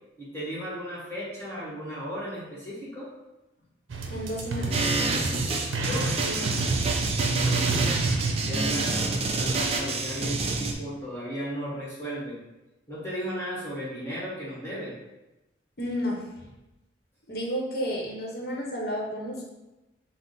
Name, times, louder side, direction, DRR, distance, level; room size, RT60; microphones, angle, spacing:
voice 1, 0.2-3.1 5.7-6.6 7.1-7.9 8.4-12.4 12.9-14.9, equal, 15° left, -8 dB, 1.2 m, -35 dB
sound 1, 3.9-10.4, right 3 dB, 90° right, 0.5 m, -30 dB
voice 2, 4.1-4.8 15.8-16.2 17.3-19.5, equal, 55° left, -1 dB, 0.8 m, -31 dB
sound 2, 4.7-10.7, right 3 dB, 30° right, 0.4 m, -28 dB
5.9 x 2.0 x 3.9 m, 1.0 s
head